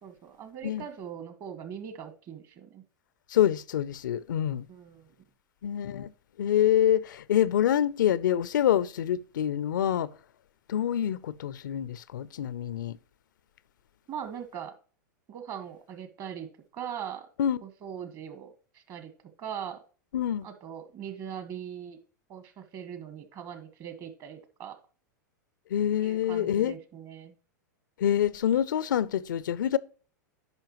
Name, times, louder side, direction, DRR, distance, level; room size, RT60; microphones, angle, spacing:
voice 1, 0.0-2.8 4.7-5.1 14.1-14.7 15.3-16.5 16.7-17.3 17.6-19.1 19.4-19.8 20.4-22.0 22.3-24.8 26.0-27.3, right 8 dB, 40° right, 1.4 m, -40 dB
voice 2, 3.3-4.7 5.6-6.1 6.4-10.1 10.7-13.0 17.4-17.6 20.1-20.5 25.7-26.8 28.0-29.8, left 10 dB, 75° left, 0.4 m, -26 dB
10.5 x 5.4 x 3.0 m
hypercardioid pair, 105°, 10 cm